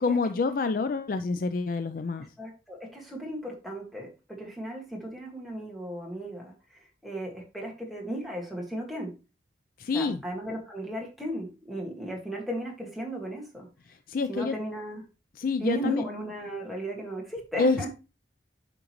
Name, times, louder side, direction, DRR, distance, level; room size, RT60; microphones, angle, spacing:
voice 1, 0.0-2.3 9.8-10.2 14.1-14.6 15.4-16.0 17.6-17.9, left 4 dB, 45° left, 11 dB, 0.4 m, -27 dB
voice 2, 2.4-9.2 9.9-13.7 14.3-15.0 15.6-17.9, right 1 dB, ahead, -1 dB, 1.7 m, -36 dB
8.6 x 5.2 x 3.0 m, 0.30 s
head